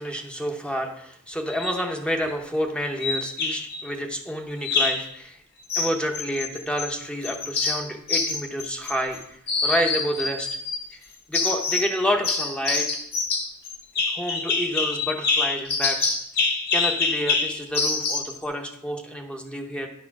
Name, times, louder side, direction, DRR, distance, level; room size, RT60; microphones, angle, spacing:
voice 1, 0.0-5.4 5.7-10.5 10.9-11.0 11.3-12.9 14.1-16.2 16.7-19.9, equal, 5° left, 3 dB, 0.8 m, -29 dB
sound 1, 1.5-1.8 3.0-3.8 4.6-5.1 5.7-6.9 7.2-9.2 9.5-10.8 11.3-11.9 12.2-18.3, left 4 dB, 50° left, 1.4 m, -26 dB
9.8 x 4.3 x 5.9 m, 0.73 s
head